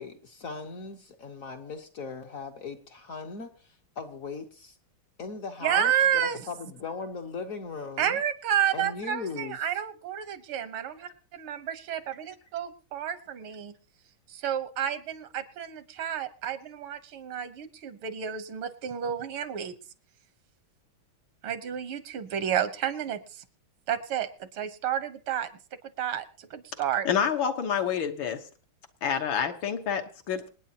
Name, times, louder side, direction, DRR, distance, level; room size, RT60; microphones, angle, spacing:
voice 1, 0.0-4.7 5.2-8.2 8.7-9.6 12.2-12.3, left 4 dB, 50° left, 5 dB, 1.1 m, -38 dB
voice 2, 5.6-6.4 8.0-13.7 14.3-19.7 21.4-23.4 23.9-25.5 26.0-27.1, right 9 dB, 80° right, 11 dB, 1.9 m, -30 dB
voice 3, 27.1-28.4 29.0-30.5, left 7 dB, 70° left, 6 dB, 1.9 m, -28 dB
27.0 x 9.1 x 2.8 m, 0.37 s
omnidirectional pair, 2.3 m